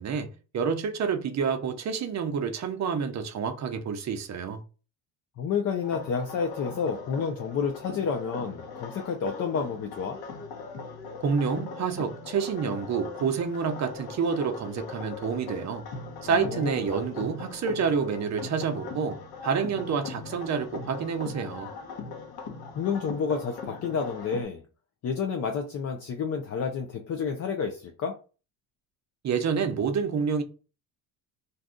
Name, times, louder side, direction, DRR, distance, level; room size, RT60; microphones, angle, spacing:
voice 1, 0.0-4.6 11.2-15.8 16.2-21.7 29.2-30.4, right 6 dB, 40° right, 0.5 m, -28 dB
voice 2, 5.4-10.2 16.2-16.8 22.8-24.6 25.0-28.2, left 6 dB, 35° left, 0.4 m, -30 dB
sound 1, 5.8-24.4, left 4 dB, 55° left, 0.9 m, -40 dB
2.6 x 2.3 x 3.6 m
cardioid pair, 115°, 46 cm